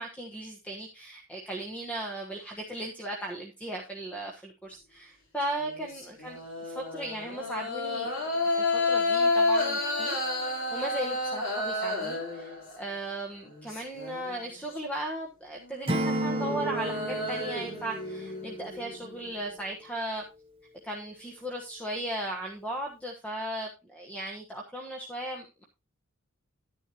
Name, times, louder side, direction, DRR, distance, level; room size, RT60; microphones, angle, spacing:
voice 1, 0.0-8.1 8.6-20.2 20.8-25.6, right 1 dB, 5° left, 0 dB, 1.2 m, -37 dB
sound 1, 5.6-13.0 13.5-14.6 15.6-19.5, left 2 dB, 65° left, 3.9 m, -31 dB
Acoustic guitar / Strum, 15.9-18.9, equal, 25° right, 1.2 m, -33 dB
11.0 x 10.0 x 2.9 m, 0.26 s
head